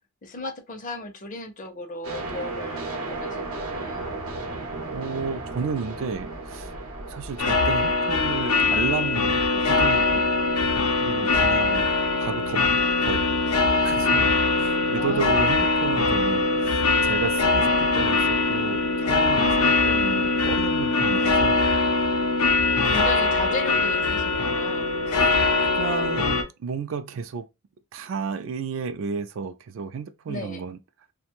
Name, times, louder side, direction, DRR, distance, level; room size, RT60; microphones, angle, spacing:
voice 1, 0.2-4.2 9.5-9.7 11.2-11.3 14.9-15.4 22.6-24.9 30.3-30.6, left 2 dB, 35° left, 0.5 m, -35 dB
sound 1, 2.0-11.7, right 2 dB, 90° right, 0.7 m, -36 dB
voice 2, 4.9-6.7 7.1-9.4 9.7-10.2 11.0-11.9 12.2-12.6 13.0-13.3 13.8-14.2 14.6-21.6 22.9-23.0 25.6-27.5 27.9-30.8, right 5 dB, 60° right, 0.3 m, -32 dB
sound 2, 7.4-26.4, left 3 dB, 85° left, 0.5 m, -22 dB
2.5 x 2.1 x 2.8 m
head